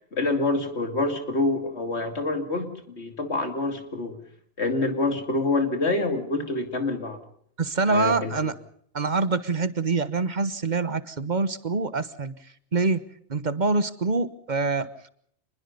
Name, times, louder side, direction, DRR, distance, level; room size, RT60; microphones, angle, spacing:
voice 1, 0.0-4.2 4.6-7.2 7.9-8.3, left 2 dB, 75° left, 7 dB, 3.0 m, -26 dB
voice 2, 7.6-8.5 8.9-12.3 12.7-13.0 13.3-14.9, right 3 dB, 45° right, 15 dB, 1.2 m, -25 dB
26.0 x 21.5 x 5.4 m, 0.64 s
omnidirectional pair, 1.1 m